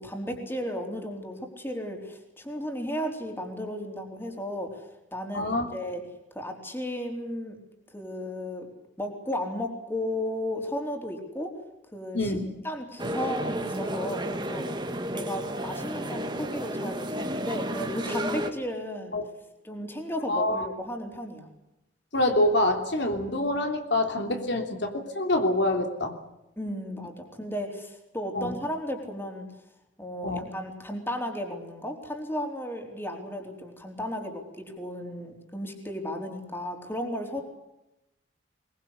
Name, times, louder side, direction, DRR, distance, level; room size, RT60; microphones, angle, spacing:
voice 1, 0.0-6.0 6.3-7.6 7.9-8.7 9.0-11.5 11.9-12.4 12.6-14.7 15.1-19.2 19.6-21.5 26.6-29.5 30.0-37.4, left 1 dB, 10° left, 3 dB, 4.0 m, -34 dB
voice 2, 5.3-5.7 12.1-12.4 19.1-19.2 20.3-20.7 22.1-26.1 28.3-28.5 30.2-30.5, left 1 dB, 65° left, 4 dB, 3.1 m, -26 dB
sound 1, 13.0-18.5, right 1 dB, 25° right, 1.9 m, -32 dB
22.5 x 22.5 x 8.2 m, 0.90 s
head